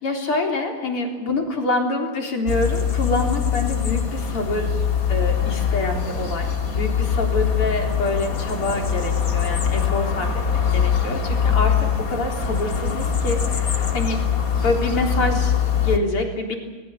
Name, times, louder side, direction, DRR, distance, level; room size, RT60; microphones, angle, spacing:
voice 1, 0.0-4.8 5.1-14.2 14.6-16.5, left 2 dB, 85° left, 2 dB, 4.8 m, -26 dB
sound 1, 2.5-16.0, left 7 dB, 40° left, 2.4 m, -23 dB
29.0 x 20.5 x 7.3 m, 1.3 s
omnidirectional pair, 2.4 m